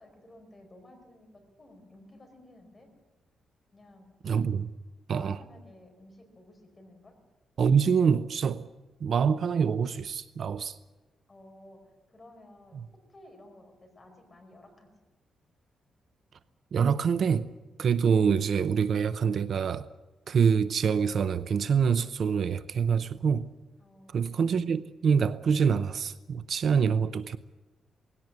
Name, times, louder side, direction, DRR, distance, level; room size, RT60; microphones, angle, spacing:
voice 1, 0.0-2.9 3.7-4.1 5.1-7.2 11.3-12.8 13.1-14.9 23.8-24.3, left 1 dB, 20° left, 4.6 m, -54 dB
voice 2, 4.2-4.7 5.1-5.4 7.6-8.7 9.0-10.8 16.7-17.5 17.8-19.9 20.3-23.5 24.1-27.4, right 6 dB, 50° right, 0.6 m, -25 dB
19.0 x 17.0 x 9.5 m
wide cardioid pair, 160°, 0 cm